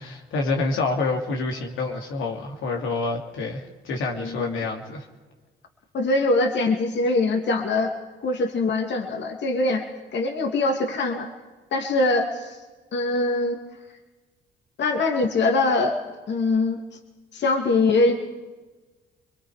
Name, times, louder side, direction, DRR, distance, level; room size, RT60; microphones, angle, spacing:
voice 1, 0.0-5.1, left 3 dB, 85° left, 1 dB, 3.0 m, -27 dB
voice 2, 4.2-4.6 5.9-7.9 8.2-9.8 10.1-11.3 11.7-12.6 12.9-13.6 14.8-16.0 16.3-16.8 17.3-18.1, left 2 dB, 65° left, 3 dB, 2.7 m, -23 dB
27.0 x 22.5 x 5.1 m, 1.3 s
cardioid pair, 90°, 20 cm